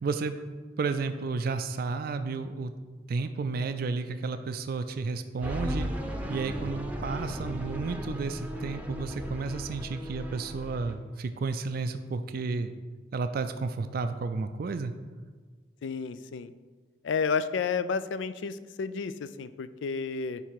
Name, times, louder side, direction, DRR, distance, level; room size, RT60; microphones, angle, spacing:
voice 1, 0.0-0.3 0.8-2.7 3.1-5.9 6.3-12.7 13.1-14.9, right 4 dB, 55° right, 9 dB, 0.4 m, -32 dB
sound 1, 5.4-10.9, equal, 10° right, 0.7 m, -36 dB
voice 2, 15.8-16.5 17.0-20.4, left 5 dB, 85° left, 14 dB, 0.4 m, -31 dB
9.9 x 3.4 x 4.8 m, 1.4 s
head